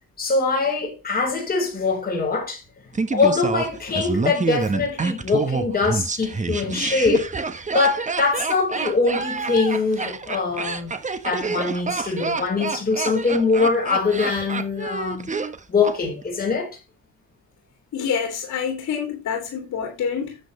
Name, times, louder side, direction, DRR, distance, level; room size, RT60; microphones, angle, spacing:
voice 1, 0.2-2.6 3.1-7.3 7.7-10.9 11.2-15.3 15.7-16.8, left 4 dB, 30° left, 4.2 m, -23 dB
Laughter, 2.9-16.0 16.2-16.3, right 4 dB, 25° right, 1.2 m, -27 dB
voice 2, 17.9-20.4, left 7 dB, 70° left, 2.8 m, -27 dB
10.5 x 8.0 x 3.2 m
cardioid pair, 90°, 30 cm